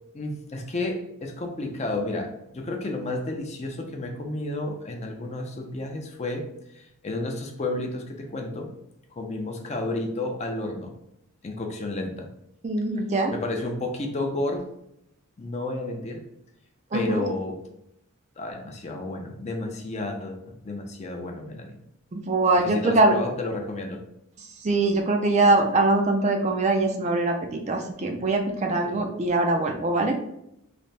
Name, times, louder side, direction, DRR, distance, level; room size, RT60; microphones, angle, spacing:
voice 1, 0.1-6.5 6.7-8.7 9.2-10.9 11.4-12.3 13.3-14.7 15.4-16.3 16.9-17.6 18.4-21.8 22.6-24.0, left 2 dB, 30° left, 3 dB, 0.4 m, -31 dB
voice 2, 12.6-13.3 16.9-17.3 22.1-23.1 24.4-30.2, right 2 dB, 30° right, 3 dB, 0.4 m, -23 dB
3.3 x 2.1 x 4.0 m, 0.78 s
head